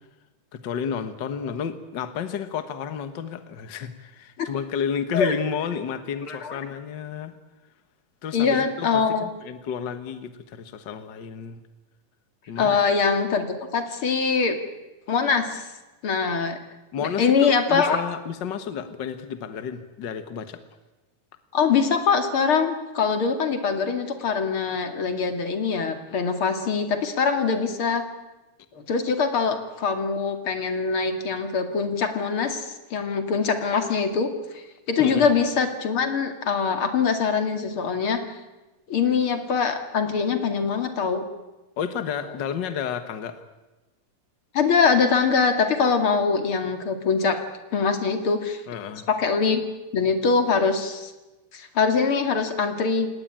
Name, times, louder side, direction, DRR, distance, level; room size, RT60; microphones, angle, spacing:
voice 1, 0.5-7.3 8.2-8.9 9.2-11.6 12.5-12.8 16.9-20.6 35.0-35.3 41.8-43.4 48.7-49.1, left 7 dB, 65° left, 10 dB, 1.1 m, -31 dB
voice 2, 6.2-6.6 8.3-9.3 12.6-14.6 15.1-15.7 16.0-16.6 17.0-18.0 21.5-28.0 28.7-38.3 38.9-41.2 44.5-47.4 47.7-48.6 49.1-49.6 49.9-51.1 51.5-53.1, left 5 dB, 40° left, 7 dB, 2.8 m, -23 dB
29.0 x 18.5 x 8.9 m, 1.1 s
omnidirectional pair, 3.9 m